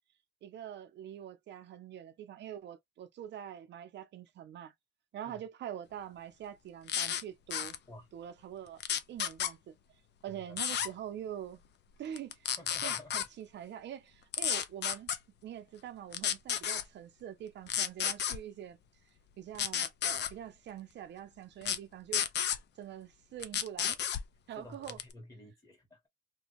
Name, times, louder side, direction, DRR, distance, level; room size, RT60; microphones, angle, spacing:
voice 1, 0.4-4.7 5.1-7.8 8.1-8.8 9.1-9.8 10.2-11.6 12.0-12.4 12.8-15.1 15.4-18.8 19.4-22.3 22.8-24.0 24.5-25.0, right 10 dB, 65° right, 0.5 m, -44 dB
sound 1, 6.9-7.2 7.5-7.8 8.8-9.5 10.6-10.9 12.2-13.3 14.3-15.2 16.1-16.8 17.7-18.4 19.5-20.3 21.6-21.8 22.1-22.6 23.4-24.2 24.9-25.1, left 9 dB, 60° left, 0.5 m, -32 dB
voice 2, 10.3-10.6 12.6-13.2 24.5-26.1, left 1 dB, 15° left, 1.3 m, -51 dB
2.5 x 2.2 x 3.0 m
cardioid pair, 90°, 20 cm